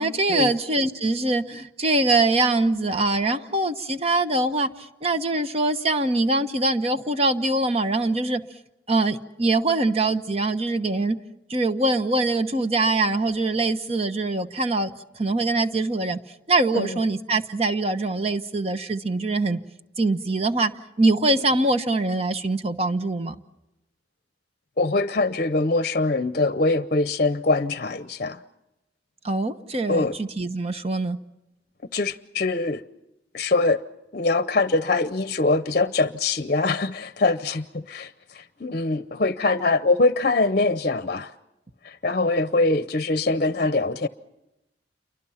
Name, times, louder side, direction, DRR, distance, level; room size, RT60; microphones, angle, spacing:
voice 1, 0.0-4.7 5.0-8.4 8.9-11.2 11.5-14.9 15.2-16.2 16.5-19.6 20.0-20.7 21.0-23.3 29.2-31.2, right 2 dB, 35° right, 1.1 m, -23 dB
voice 2, 24.8-28.4 29.9-30.2 31.9-32.8 33.3-33.8 34.1-38.1 38.3-41.3 41.8-44.1, left 3 dB, 45° left, 0.8 m, -23 dB
29.0 x 24.0 x 5.8 m
head